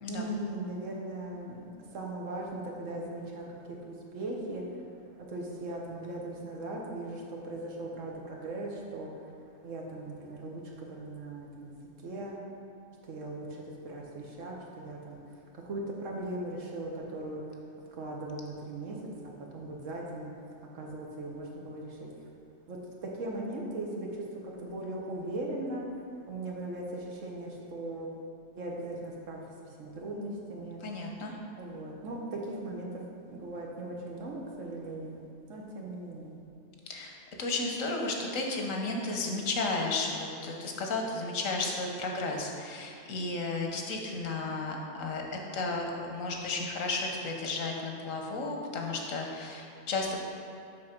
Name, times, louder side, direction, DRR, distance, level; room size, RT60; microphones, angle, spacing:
voice 1, 0.1-4.8 5.2-9.1 9.6-11.8 12.0-12.4 13.0-17.4 17.9-20.3 20.7-22.0 22.7-25.8 26.3-28.1 28.6-30.8 31.6-33.0 33.3-36.4, right 2 dB, 75° right, -1 dB, 1.4 m, -39 dB
voice 2, 30.8-31.4 36.9-45.2 45.5-50.2, left 3 dB, 80° left, 1 dB, 1.3 m, -33 dB
6.7 x 4.1 x 5.8 m, 2.6 s
omnidirectional pair, 1.3 m